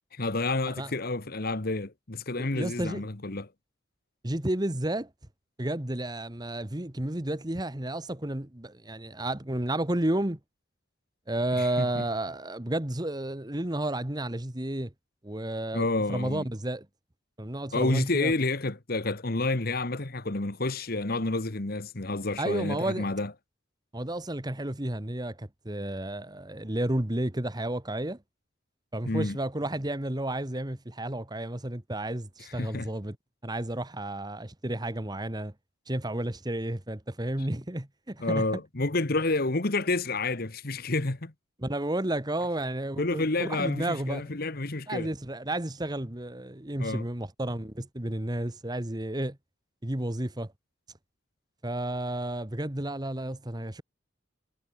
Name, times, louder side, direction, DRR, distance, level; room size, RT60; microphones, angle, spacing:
voice 1, 0.1-3.5 11.5-12.0 15.7-16.4 17.7-23.3 29.0-29.4 32.6-32.9 38.2-41.3 43.0-45.1 46.8-47.0, left 2 dB, 50° left, 1.4 m, -29 dB
voice 2, 2.4-3.1 4.2-5.1 5.6-10.4 11.3-14.9 15.2-16.8 17.4-18.3 22.4-23.1 23.9-28.2 28.9-33.2 33.4-35.5 35.9-38.4 41.6-44.3 44.9-49.4 49.8-50.5 51.6-53.8, right 1 dB, 20° right, 1.4 m, -32 dB
head